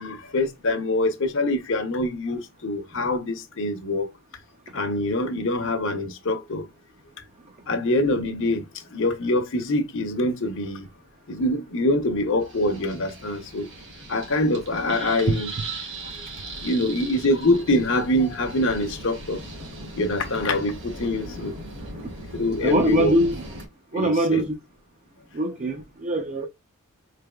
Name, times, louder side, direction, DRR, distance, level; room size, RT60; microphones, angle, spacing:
voice 1, 0.0-4.1 4.7-6.6 7.7-8.6 8.9-10.8 11.3-13.7 14.1-15.5 16.6-19.4 20.0-21.5 22.3-23.1 23.9-24.4, left 1 dB, 60° left, 0.8 m, -24 dB
sound 1, 12.4-23.7, right 2 dB, 55° right, 1.2 m, -38 dB
voice 2, 22.6-23.4 23.9-24.5 25.3-26.5, right 1 dB, 35° right, 0.5 m, -22 dB
4.6 x 3.3 x 2.3 m
head